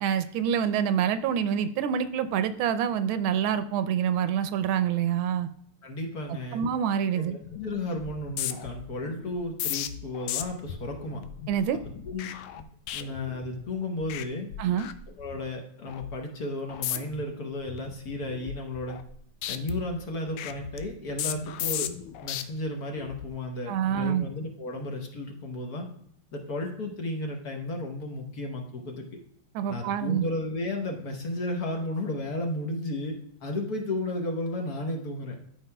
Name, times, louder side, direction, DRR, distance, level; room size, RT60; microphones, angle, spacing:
voice 1, 0.0-5.5 6.5-7.4 11.5-11.8 14.6-14.9 23.7-24.3 29.5-30.2, right 8 dB, 80° right, 11 dB, 1.4 m, -26 dB
voice 2, 5.8-6.6 7.1-11.2 12.0-12.6 12.9-14.5 15.2-19.0 19.5-21.9 22.2-25.9 26.3-29.1 29.7-35.3, left 1 dB, 55° left, 2 dB, 1.3 m, -33 dB
sound 1, 7.4-7.7 8.0-13.7 14.0-14.3 14.5-15.5 15.9-16.2 16.7-17.2 17.7-19.2 19.4-22.4 23.0-23.3, left 10 dB, 90° left, 1.4 m, -36 dB
12.5 x 5.0 x 2.2 m, 0.69 s
omnidirectional pair, 2.2 m